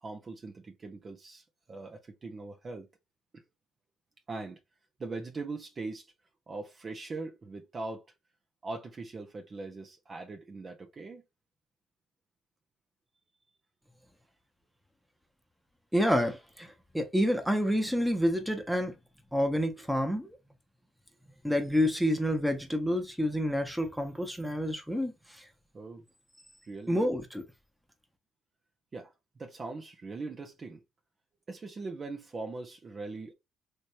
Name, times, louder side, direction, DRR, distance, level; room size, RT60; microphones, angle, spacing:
voice 1, 0.0-1.4 1.7-2.9 4.3-4.6 5.0-6.1 6.5-8.0 8.6-11.2 25.7-26.0 26.7-27.0 28.9-30.8 31.5-33.3, right 3 dB, 35° right, 0.8 m, -41 dB
voice 2, 15.9-18.9 19.3-20.4 21.4-25.1 26.9-27.4, equal, ahead, 1.1 m, -28 dB
3.2 x 3.1 x 2.7 m
supercardioid pair, 80°, 0 cm